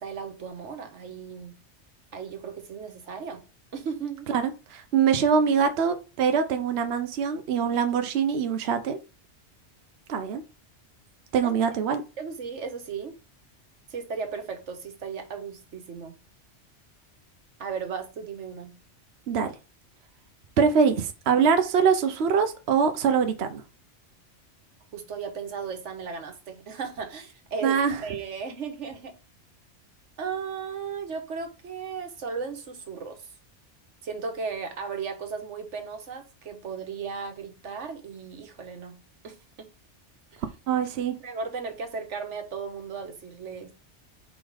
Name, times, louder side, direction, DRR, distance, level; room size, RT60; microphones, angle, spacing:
voice 1, 0.0-1.6 2.1-3.4 3.7-4.3 11.4-11.5 12.2-13.2 13.9-16.2 17.6-18.8 24.9-29.1 30.2-33.3 34.0-39.0 39.2-39.7 40.3-40.4 41.2-43.7, right 5 dB, 80° right, 1.4 m, -36 dB
voice 2, 4.3-9.0 10.1-10.4 11.3-12.0 19.3-19.5 20.6-23.6 27.6-28.0 40.7-41.2, right 6 dB, 65° right, 0.9 m, -23 dB
4.7 x 4.2 x 4.8 m
omnidirectional pair, 1.2 m